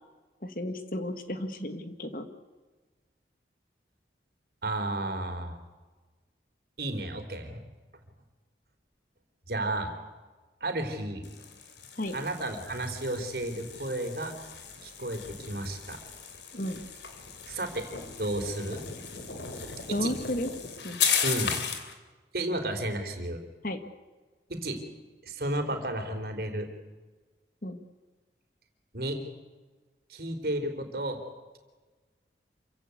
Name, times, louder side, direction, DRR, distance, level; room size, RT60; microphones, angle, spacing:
voice 1, 0.4-2.3 12.0-12.1 16.5-16.8 19.9-20.5 20.8-21.0 23.6-23.8 27.6-27.8, left 1 dB, 50° left, 8 dB, 1.8 m, -33 dB
voice 2, 4.6-5.6 6.8-7.6 9.5-9.9 10.6-11.3 12.1-14.3 14.8-16.0 17.5-17.9 18.2-18.8 19.9-20.1 21.2-21.5 22.3-23.4 24.5-24.8 25.2-26.7 28.9-29.2 30.1-31.2, right 1 dB, 55° right, 5 dB, 3.8 m, -32 dB
sound 1, 11.2-21.9, left 7 dB, 80° left, 3.2 m, -36 dB
27.0 x 16.0 x 8.5 m, 1.3 s
head